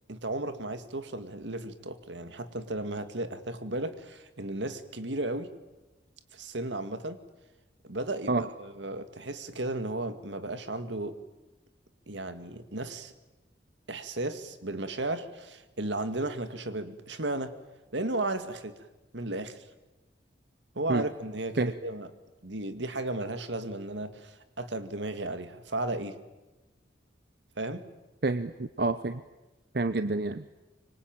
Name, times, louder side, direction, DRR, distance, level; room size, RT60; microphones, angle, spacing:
voice 1, 0.1-5.5 6.3-7.2 7.8-11.2 12.1-13.1 13.9-17.6 17.9-18.8 19.1-19.6 20.8-22.1 22.4-26.2 27.6-27.8, right 2 dB, 80° right, 9 dB, 2.2 m, -34 dB
voice 2, 28.2-29.2 29.7-30.4, right 3 dB, 60° right, 12 dB, 0.8 m, -28 dB
25.5 x 25.0 x 9.1 m, 1.1 s
head